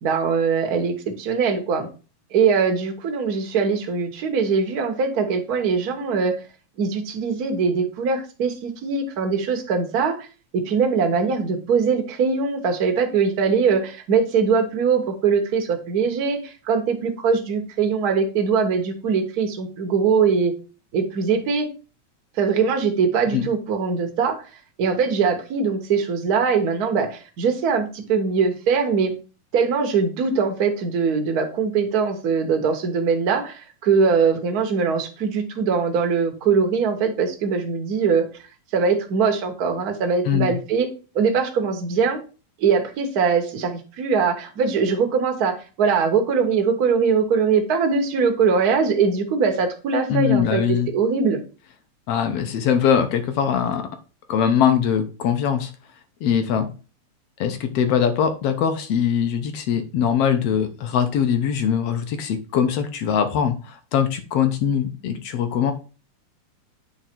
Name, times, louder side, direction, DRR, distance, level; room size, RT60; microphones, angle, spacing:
voice 1, 0.0-1.9 2.3-6.3 6.8-10.3 10.5-20.5 20.9-21.7 22.4-24.4 24.8-29.1 29.5-38.3 38.7-40.9 41.1-42.2 42.6-51.4, right 5 dB, 60° right, 4 dB, 0.9 m, -21 dB
voice 2, 50.1-50.9 52.1-53.9 54.3-55.7 56.2-56.7 57.4-65.7, left 8 dB, 65° left, 8 dB, 1.7 m, -22 dB
9.0 x 3.4 x 4.4 m, 0.34 s
omnidirectional pair, 3.4 m